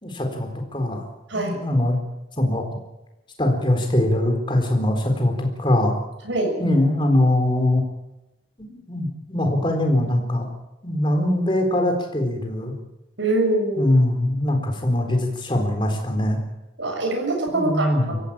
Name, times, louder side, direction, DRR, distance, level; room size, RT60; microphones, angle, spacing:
voice 1, 0.0-1.0 1.3-2.0 2.4-2.6 3.4-5.9 6.6-7.8 8.7-10.5 10.8-12.7 13.8-16.4 17.5-18.2, left 1 dB, 25° left, 3 dB, 4.1 m, -22 dB
voice 2, 6.3-6.6 13.2-13.8 16.8-18.2, right 2 dB, 80° right, 2 dB, 7.2 m, -23 dB
24.0 x 15.0 x 8.9 m, 0.97 s
head